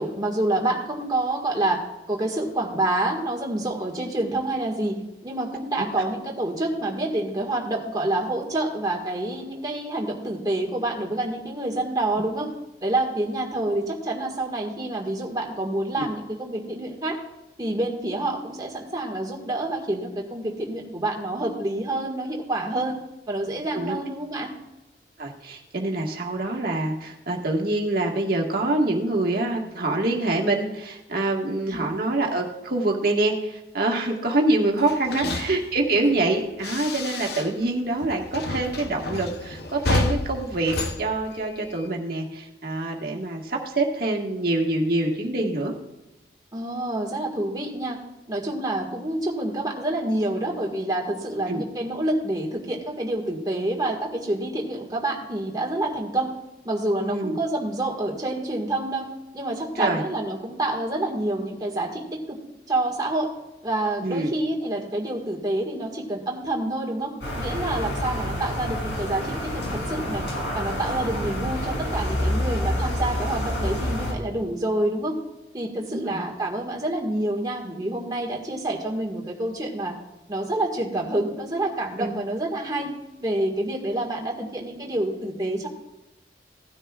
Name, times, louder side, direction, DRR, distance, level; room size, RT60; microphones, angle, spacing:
voice 1, 0.0-1.8 2.1-12.5 12.8-17.2 17.6-23.0 23.3-24.5 31.7-31.9 35.0-35.3 46.5-48.0 48.3-56.3 56.6-59.1 59.3-62.4 62.7-63.3 63.6-67.1 67.4-70.2 70.5-75.2 75.5-80.0 80.3-82.9 83.2-85.7, right 1 dB, 20° right, -1 dB, 1.7 m, -27 dB
voice 2, 25.2-45.7 51.5-51.6 57.0-57.4 59.7-60.0 64.0-64.3 75.9-76.2 82.0-82.1, right 2 dB, 55° right, 0 dB, 1.6 m, -25 dB
sound 1, 34.8-37.7 38.0-41.9, left 2 dB, 60° left, 0.8 m, -30 dB
sound 2, 67.2-74.1, left 1 dB, 80° left, 3.8 m, -28 dB
17.0 x 10.0 x 2.4 m, 0.97 s
head